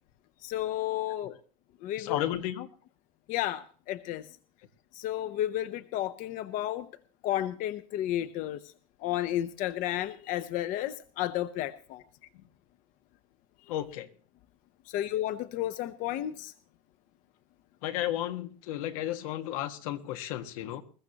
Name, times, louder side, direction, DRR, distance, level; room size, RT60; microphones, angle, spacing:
voice 1, 0.4-1.4 1.8-2.2 3.3-4.2 4.9-6.9 7.2-8.6 9.0-12.0 14.9-16.5, left 13 dB, 50° left, 13 dB, 0.8 m, -32 dB
voice 2, 2.0-2.7 13.7-14.1 17.8-20.8, left 12 dB, 85° left, 8 dB, 1.6 m, -33 dB
21.5 x 14.0 x 2.9 m, 0.40 s
cardioid pair, 145°, 17 cm